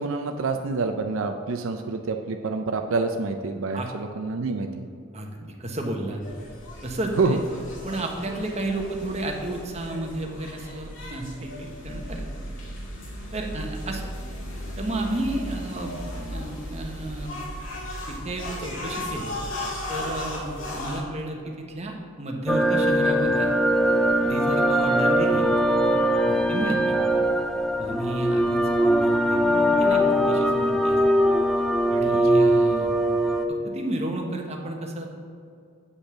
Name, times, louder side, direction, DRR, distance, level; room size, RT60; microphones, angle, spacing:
voice 1, 0.0-4.8 7.2-7.4, right 3 dB, 75° right, 5 dB, 0.5 m, -27 dB
voice 2, 5.1-6.2 6.8-7.4 7.8-12.5 13.3-14.1 14.8-17.3 18.1-19.4 19.9-23.5 24.2-26.8 27.8-31.0 31.9-35.1, right 1 dB, 30° right, 2 dB, 1.1 m, -32 dB
sound 1, 6.2-21.0, left 1 dB, 65° left, 2.1 m, -36 dB
sound 2, 22.5-33.5, equal, ahead, 0.4 m, -21 dB
8.5 x 5.3 x 6.0 m, 2.4 s
head